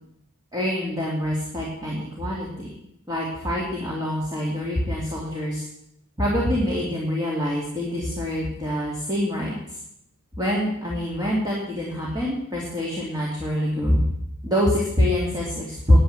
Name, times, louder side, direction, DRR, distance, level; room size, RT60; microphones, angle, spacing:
voice 1, 0.5-2.7 3.1-5.7 6.2-9.8 10.4-14.0 14.4-16.0, equal, 15° right, -4 dB, 2.7 m, -25 dB
10.0 x 8.6 x 9.7 m, 0.78 s
head